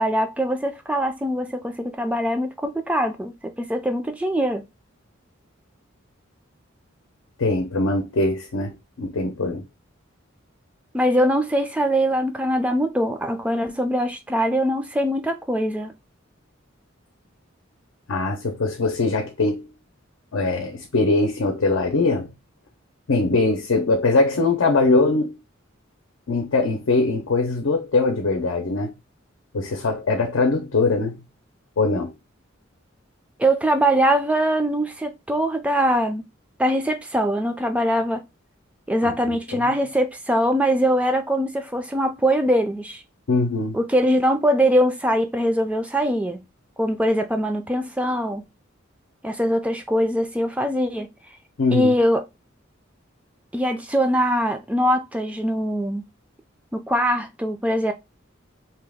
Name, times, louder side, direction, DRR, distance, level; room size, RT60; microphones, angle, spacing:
voice 1, 0.0-4.6 10.9-15.9 33.4-36.2 36.6-38.2 38.9-43.0 43.7-46.4 46.8-48.4 49.2-51.1 51.7-52.2 53.5-56.0 56.7-57.9, equal, 5° right, 0.3 m, -22 dB
voice 2, 7.4-9.6 18.1-19.7 20.3-22.3 23.1-25.4 26.3-29.0 29.5-31.2 31.8-32.1 39.0-39.3 39.6-39.8 43.3-43.8 51.6-51.9, left 3 dB, 85° left, 0.6 m, -22 dB
2.8 x 2.3 x 3.4 m
head